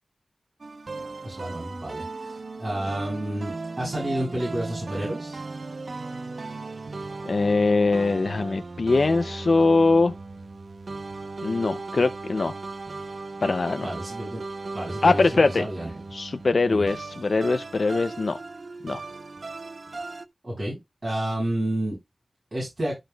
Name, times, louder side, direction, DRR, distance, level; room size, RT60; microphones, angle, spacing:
sound 1, 0.6-20.2, right 3 dB, 65° right, 0.8 m, -37 dB
voice 1, 1.2-5.4 13.8-14.4 14.7-15.9 16.7-16.8 20.4-22.0 22.5-23.0, right 1 dB, 45° right, 7.2 m, -30 dB
voice 2, 7.3-10.1 11.4-12.6 13.4-13.9 15.0-15.7 16.1-18.4 18.8-19.0, left 3 dB, 70° left, 0.5 m, -22 dB
13.5 x 6.4 x 2.3 m
wide cardioid pair, 65°, 0 cm